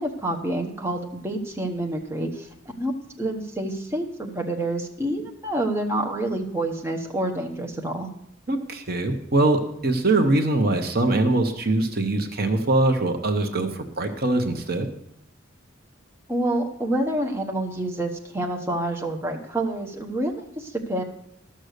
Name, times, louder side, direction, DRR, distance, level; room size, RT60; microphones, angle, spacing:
voice 1, 0.0-2.5 2.8-2.9 3.2-8.1 16.3-21.0, right 1 dB, 10° right, 1 dB, 1.0 m, -28 dB
voice 2, 8.5-14.9, right 2 dB, 45° right, 5 dB, 0.9 m, -22 dB
13.0 x 6.5 x 6.6 m, 0.76 s
head